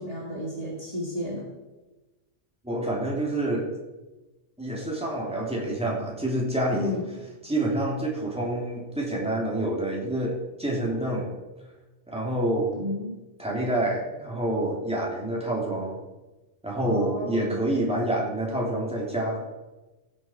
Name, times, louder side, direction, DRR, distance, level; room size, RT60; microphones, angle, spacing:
voice 1, 0.0-1.5 6.7-7.1 12.7-13.2 16.8-17.6, left 1 dB, 30° right, -4 dB, 2.1 m, -32 dB
voice 2, 2.6-3.7 4.6-6.9 7.4-11.3 12.1-12.7 13.4-16.0 16.6-19.4, right 1 dB, 5° right, -4 dB, 3.0 m, -27 dB
15.5 x 7.7 x 4.5 m, 1.1 s
omnidirectional pair, 1.2 m